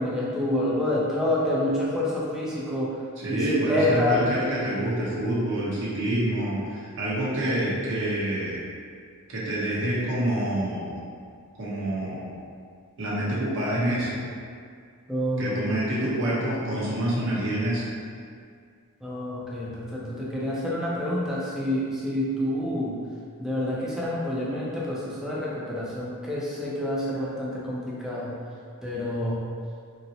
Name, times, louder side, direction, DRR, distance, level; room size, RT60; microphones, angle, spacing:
voice 1, 0.0-3.0 3.3-4.2 15.1-15.6 19.0-23.0 23.4-28.3 28.8-29.4, left 1 dB, ahead, -7 dB, 0.4 m, -28 dB
voice 2, 3.2-8.6 9.3-11.0 11.6-12.3 13.0-14.2 15.4-17.8, right 1 dB, 60° right, -8 dB, 0.8 m, -27 dB
3.9 x 2.0 x 2.7 m, 2.1 s
head